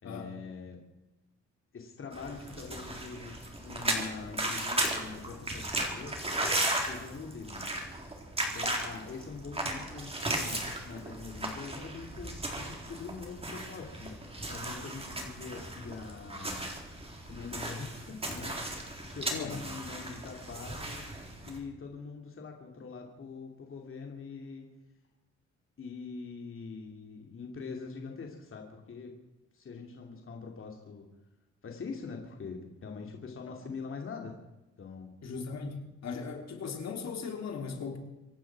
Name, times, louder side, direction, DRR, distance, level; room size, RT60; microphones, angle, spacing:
voice 1, 0.0-0.8 1.7-6.4 6.8-7.6 8.5-14.2 14.5-16.7 17.3-18.6 19.0-21.1 21.4-24.7 25.8-29.1 29.5-31.1 31.6-34.3 34.8-35.1, left 4 dB, 45° left, 1 dB, 2.8 m, -43 dB
sound 1, 2.1-21.6, right 1 dB, 20° right, 4.0 m, -36 dB
voice 2, 19.3-19.6 35.2-38.0, left 5 dB, 60° left, 3 dB, 3.2 m, -38 dB
25.5 x 11.5 x 4.8 m, 1.0 s
cardioid pair, 90°, 30 cm